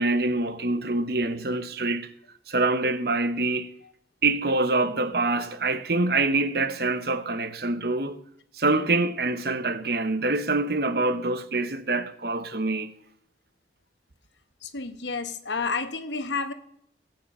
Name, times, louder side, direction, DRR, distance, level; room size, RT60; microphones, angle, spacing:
voice 1, 0.0-2.1 2.5-3.7 4.2-8.2 8.5-12.9, right 2 dB, 55° right, 1.0 m, -25 dB
voice 2, 14.6-16.5, left 4 dB, 80° left, 1.2 m, -30 dB
17.0 x 8.9 x 5.5 m
head